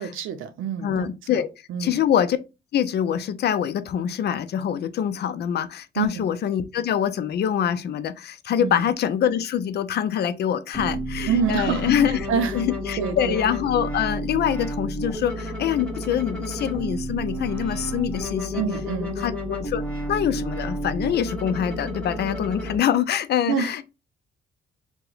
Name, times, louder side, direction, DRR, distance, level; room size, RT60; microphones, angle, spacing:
voice 1, 0.0-1.1 1.7-2.0 6.0-6.3 8.6-8.8 11.3-11.9 12.3-12.6 13.0-13.4 18.5-19.1 23.5-23.7, right 6 dB, 80° right, 0.6 m, -26 dB
voice 2, 0.8-1.5 1.8-2.4 2.7-18.6 19.2-19.8 20.1-23.8, left 9 dB, 55° left, 0.4 m, -25 dB
sound 1, 10.7-22.7, equal, 5° left, 1.1 m, -31 dB
2.8 x 2.1 x 3.9 m
cardioid pair, 90°, 20 cm